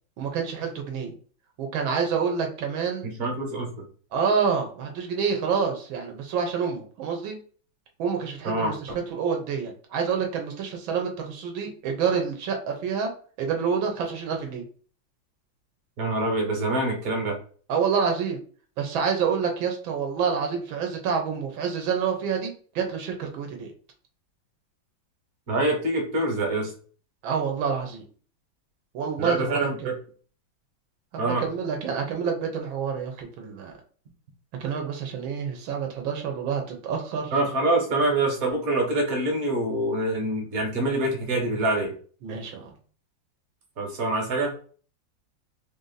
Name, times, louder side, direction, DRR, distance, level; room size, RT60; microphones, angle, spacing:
voice 1, 0.2-1.1 1.6-3.1 4.1-7.4 8.0-13.1 13.4-14.6 17.7-18.4 18.8-23.7 27.2-28.0 28.9-29.9 31.1-33.7 34.6-37.3 42.2-42.7, right 6 dB, 85° right, 3 dB, 1.6 m, -28 dB
voice 2, 3.2-3.7 8.4-9.0 16.0-17.3 25.5-26.7 29.2-29.9 31.2-31.4 37.3-41.9 43.8-44.5, right 2 dB, 50° right, 2 dB, 1.4 m, -25 dB
3.5 x 2.6 x 3.9 m, 0.43 s
omnidirectional pair, 2.1 m